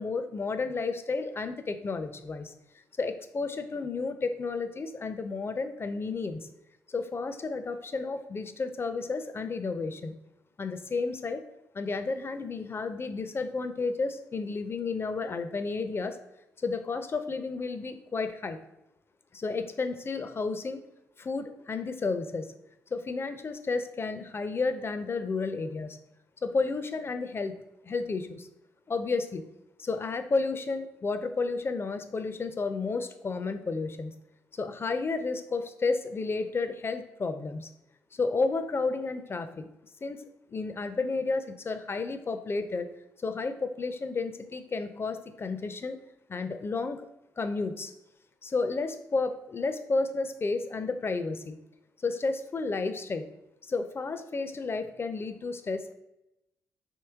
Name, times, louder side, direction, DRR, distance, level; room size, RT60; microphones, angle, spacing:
voice 1, 0.0-2.5 3.0-6.5 6.9-10.1 10.6-11.4 11.7-16.2 16.6-18.6 19.3-20.8 21.2-22.5 22.9-26.0 26.4-27.5 27.8-28.5 28.9-29.4 29.8-34.1 34.5-37.7 38.1-39.7 40.0-40.2 40.5-42.9 43.2-46.0 46.3-47.1 47.4-47.9 48.4-51.6 52.0-53.3 53.6-55.9, left 4 dB, 35° left, 9 dB, 0.5 m, -32 dB
4.6 x 3.0 x 3.4 m, 0.88 s
hypercardioid pair, 45°, 7 cm